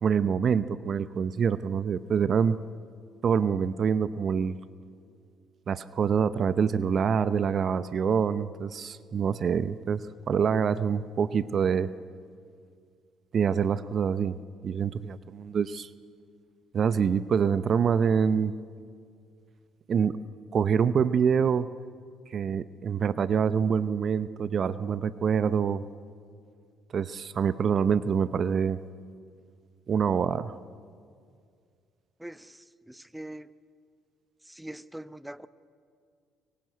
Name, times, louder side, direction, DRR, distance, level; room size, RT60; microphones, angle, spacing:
voice 1, 0.0-2.6 3.2-4.6 5.7-11.9 13.3-14.4 14.6-15.9 16.7-18.5 19.9-20.1 20.5-21.7 22.3-25.8 26.9-28.8 29.9-30.6, right 7 dB, 50° right, 15 dB, 0.8 m, -26 dB
voice 2, 32.2-33.5 34.4-35.5, right 1 dB, 5° right, 14 dB, 1.0 m, -43 dB
25.0 x 23.0 x 9.2 m, 2.2 s
hypercardioid pair, 50°, 0 cm